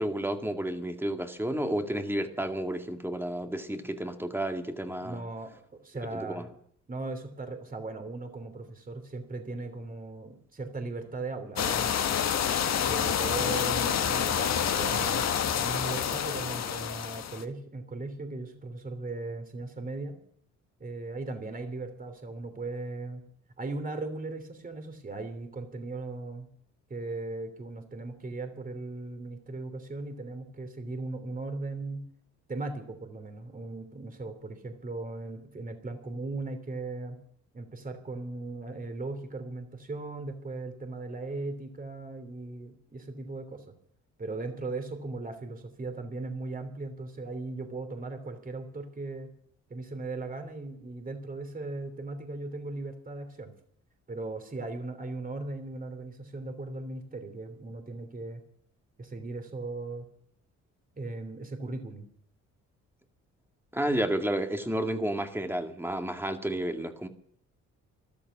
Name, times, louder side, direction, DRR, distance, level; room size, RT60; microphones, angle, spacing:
voice 1, 0.0-5.2 6.1-6.5 63.7-67.1, right 1 dB, 5° right, 6 dB, 2.1 m, -31 dB
voice 2, 5.0-6.5 6.9-12.1 12.8-20.2 20.8-23.2 23.6-26.5 26.9-32.0 32.5-37.2 37.5-43.7 44.2-49.3 49.7-53.5 54.1-58.4 59.0-60.0 61.0-62.1, right 3 dB, 30° right, 7 dB, 3.1 m, -38 dB
sound 1, 11.6-17.4, left 8 dB, 60° left, 1.5 m, -28 dB
14.0 x 12.5 x 7.4 m, 0.64 s
cardioid pair, 90°, 30 cm